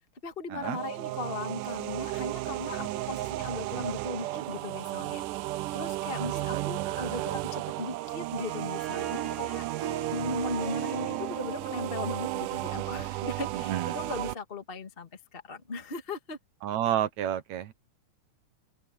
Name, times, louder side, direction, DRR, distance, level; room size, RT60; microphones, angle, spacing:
voice 1, 0.2-16.4, left 2 dB, 20° left, 1.6 m, -38 dB
sound 1, 0.6-14.4, right 17 dB, 85° right, 2.3 m, -34 dB
voice 2, 6.5-7.3 13.7-13.9 16.6-17.7, right 11 dB, 70° right, 2.2 m, -31 dB
Harp, 8.2-13.4, right 8 dB, 55° right, 2.2 m, -40 dB
open air
omnidirectional pair, 3.6 m